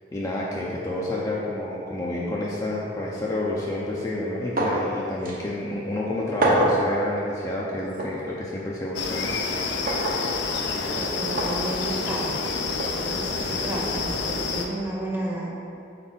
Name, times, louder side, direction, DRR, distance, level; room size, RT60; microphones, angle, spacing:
voice 1, 0.1-9.3 13.5-13.6, left 1 dB, 20° left, -5 dB, 0.5 m, -29 dB
sound 1, 4.6-4.9 5.3-5.4 6.4-6.8 8.0-8.1 9.9-10.2 11.4-11.6 12.8-12.9, right 1 dB, 50° right, 0.8 m, -23 dB
sound 2, 8.9-14.7, left 4 dB, 70° left, 0.5 m, -28 dB
voice 2, 10.6-12.4 12.9-15.5, right 1 dB, 10° right, -4 dB, 0.8 m, -32 dB
4.3 x 4.1 x 5.3 m, 2.7 s
head